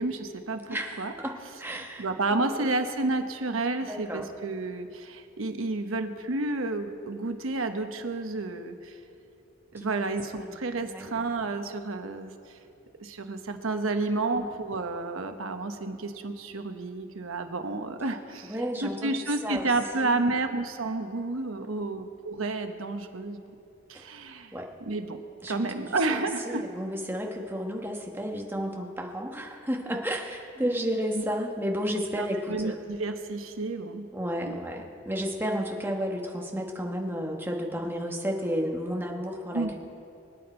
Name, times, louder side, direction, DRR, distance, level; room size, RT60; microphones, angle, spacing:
voice 1, 0.0-1.1 1.8-9.0 9.7-12.3 13.0-18.5 18.8-23.4 23.9-24.5 24.9-25.2 25.5-26.6 31.1-31.2 32.2-34.1 34.4-34.6 39.5-39.8, right 3 dB, 85° right, 7 dB, 1.0 m, -30 dB
voice 2, 0.7-2.6 3.8-4.2 9.8-10.1 10.8-11.1 14.0-14.5 18.5-19.1 19.4-19.7 19.9-20.4 21.6-21.9 24.5-24.7 25.4-32.7 34.1-39.8, equal, 10° right, 0 dB, 1.2 m, -32 dB
24.5 x 8.8 x 4.4 m, 2.7 s
head